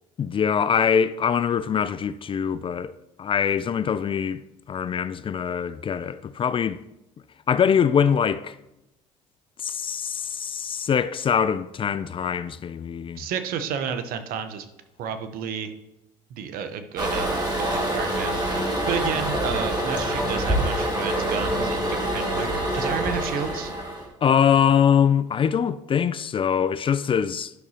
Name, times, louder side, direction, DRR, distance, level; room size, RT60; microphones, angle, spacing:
voice 1, 0.2-2.9 3.2-4.4 4.7-6.8 7.5-8.6 9.6-13.3 24.2-27.5, left 7 dB, 35° left, 0.4 m, -23 dB
voice 2, 13.1-14.7 15.0-15.7 16.3-23.7, right 7 dB, 65° right, 0.9 m, -31 dB
Toilet flush, 17.0-24.1, right 1 dB, 25° right, 2.7 m, -26 dB
11.5 x 6.0 x 2.9 m
supercardioid pair, 80°, 16 cm